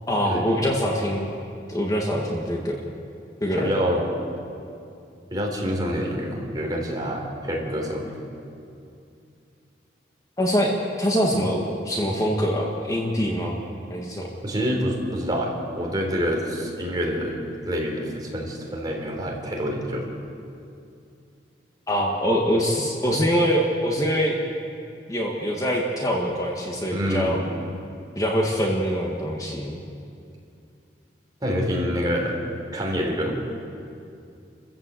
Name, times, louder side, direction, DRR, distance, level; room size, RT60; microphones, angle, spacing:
voice 1, 0.1-1.3 1.7-2.8 3.4-3.7 10.4-10.7 11.0-13.6 13.9-14.3 21.9-24.4 25.1-27.4 28.2-29.8, equal, 20° left, -1 dB, 1.8 m, -24 dB
voice 2, 3.6-4.1 5.3-8.1 14.4-17.4 17.7-20.1 26.9-27.4 31.4-32.3 32.7-33.4, equal, 25° right, -1 dB, 3.9 m, -26 dB
28.5 x 15.0 x 7.8 m, 2.6 s
head